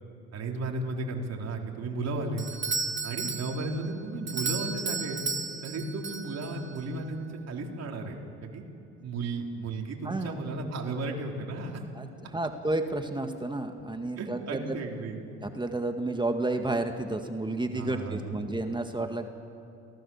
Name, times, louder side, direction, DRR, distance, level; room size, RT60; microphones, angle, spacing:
voice 1, 0.3-2.5 3.0-5.3 5.6-8.6 9.0-11.8 14.2-15.4 17.7-18.4, right 2 dB, 50° right, 1 dB, 4.1 m, -34 dB
Doorbell, 2.4-6.8, right 4 dB, 35° right, 1.9 m, -34 dB
voice 2, 10.0-10.4 12.0-14.8 15.4-19.3, right 2 dB, 15° right, 6 dB, 1.9 m, -31 dB
29.0 x 19.0 x 7.3 m, 2.8 s
hypercardioid pair, 60°, 33 cm